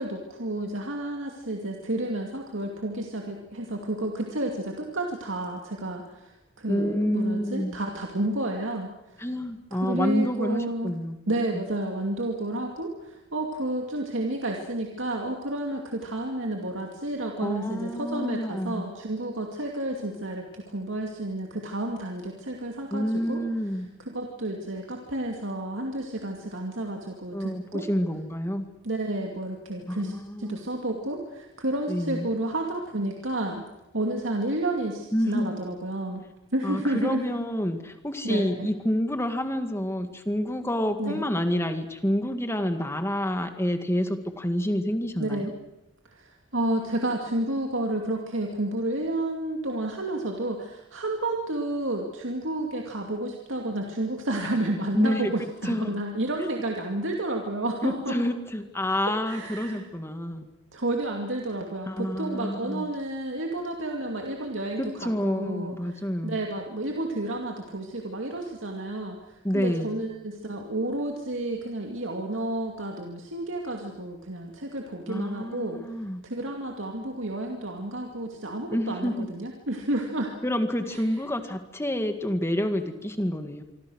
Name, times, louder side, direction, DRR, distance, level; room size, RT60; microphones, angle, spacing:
voice 1, 0.0-9.3 9.7-10.9 11.3-23.4 24.0-27.9 28.8-30.1 30.4-33.6 33.9-36.2 36.5-37.2 38.2-38.7 41.0-41.2 45.2-45.5 46.1-58.2 59.3-59.8 60.7-75.8 76.2-80.3 80.9-81.0, right 1 dB, 70° right, 1 dB, 2.4 m, -31 dB
voice 2, 6.7-7.8 9.2-11.2 11.5-11.6 17.4-18.8 22.9-23.9 27.3-28.7 29.9-30.6 31.9-32.3 35.1-35.6 36.6-45.5 54.9-55.3 55.6-55.9 56.4-56.5 57.8-60.5 61.9-62.9 64.8-66.4 69.4-70.0 75.1-76.2 78.7-79.3 80.4-83.6, equal, 15° left, 7 dB, 2.0 m, -28 dB
25.5 x 25.0 x 6.4 m, 0.93 s
head